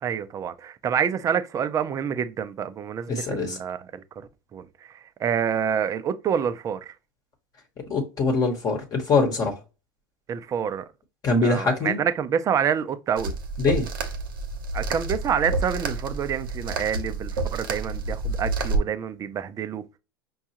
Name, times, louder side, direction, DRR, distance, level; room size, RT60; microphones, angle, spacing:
voice 1, 0.0-4.0 4.5-6.9 10.3-10.8 11.4-13.3 14.7-19.8, right 8 dB, 30° right, 0.5 m, -27 dB
voice 2, 3.1-3.6 7.9-9.6 11.2-12.0 13.6-13.9, left 3 dB, 35° left, 1.0 m, -23 dB
sound 1, 13.2-18.8, right 3 dB, 80° right, 0.8 m, -29 dB
5.3 x 2.4 x 2.9 m
hypercardioid pair, 100°, 11 cm